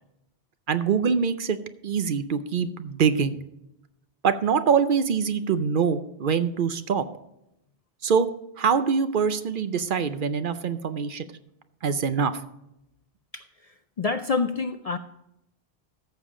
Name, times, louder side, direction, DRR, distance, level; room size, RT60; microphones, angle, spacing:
voice 1, 0.7-1.6 1.8-3.4 4.2-7.1 8.0-8.3 8.6-11.2 11.8-12.4, right 6 dB, 60° right, 11 dB, 0.7 m, -24 dB
voice 2, 13.3-15.0, left 4 dB, 55° left, 9 dB, 0.4 m, -28 dB
13.5 x 7.0 x 3.7 m, 0.84 s
omnidirectional pair, 1.1 m